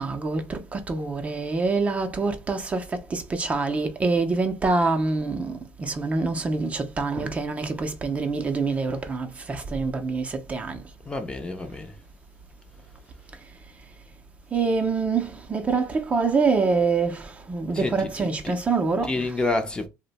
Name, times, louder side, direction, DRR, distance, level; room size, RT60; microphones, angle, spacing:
voice 1, 0.0-2.8 3.1-10.8 14.5-19.3, right 4 dB, 25° right, 0.6 m, -25 dB
voice 2, 11.1-11.9 17.7-18.6 19.0-19.9, left 2 dB, 15° left, 0.6 m, -29 dB
2.7 x 2.1 x 4.0 m
supercardioid pair, 110°, 6 cm